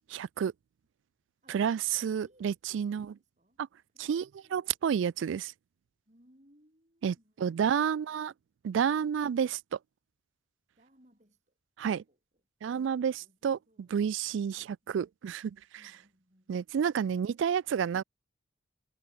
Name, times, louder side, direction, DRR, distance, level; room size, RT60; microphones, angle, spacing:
voice 1, 0.1-0.5 1.5-3.1 3.6-3.7 4.0-4.3 4.5-5.5 7.0-8.3 8.6-9.8 11.8-12.0 12.6-15.6 16.5-18.0, right 7 dB, 75° right, 0.3 m, -30 dB
voice 2, 1.4-3.6 3.9-4.8 6.1-8.4 10.8-12.4 13.0-14.0 14.5-14.8 15.8-17.6, equal, 35° right, 7.0 m, -66 dB
head